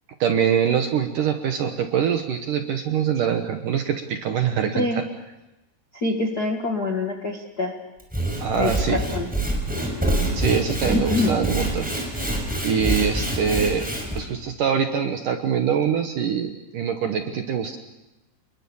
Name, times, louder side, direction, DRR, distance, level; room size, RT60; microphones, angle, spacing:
voice 1, 0.2-5.0 8.4-9.0 10.2-12.3 12.6-17.8, right 7 dB, 65° right, 6 dB, 2.1 m, -24 dB
voice 2, 5.9-7.7 8.6-9.3 10.9-11.3, left 2 dB, 75° left, 3 dB, 0.9 m, -25 dB
Sawing / Wood, 8.0-14.2, right 1 dB, ahead, 5.5 m, -26 dB
29.5 x 21.5 x 7.2 m, 1.0 s
omnidirectional pair, 5.4 m